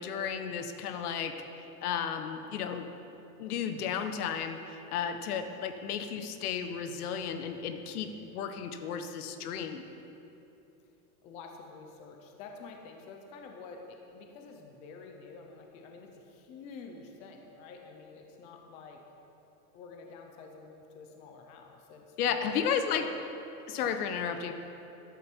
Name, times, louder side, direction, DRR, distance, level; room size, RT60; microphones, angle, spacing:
voice 1, 0.0-2.9 3.4-9.8 22.2-23.1 23.7-24.5, left 7 dB, 85° left, 8 dB, 1.2 m, -33 dB
voice 2, 11.2-19.0 19.7-22.6, left 4 dB, 15° left, 2 dB, 0.5 m, -49 dB
14.0 x 12.0 x 4.5 m, 2.9 s
supercardioid pair, 175°, 44 cm